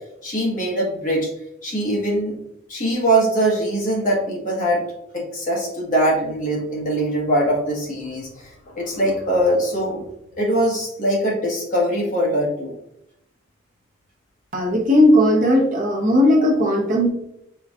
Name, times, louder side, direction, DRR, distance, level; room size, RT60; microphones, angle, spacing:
voice 1, 0.2-1.3 1.6-2.4 2.7-4.8 5.1-10.0 10.4-12.7, right 1 dB, 45° left, -3 dB, 1.3 m, -22 dB
voice 2, 14.5-17.1, left 1 dB, 45° right, 0 dB, 0.9 m, -16 dB
4.7 x 3.9 x 2.4 m, 0.80 s
head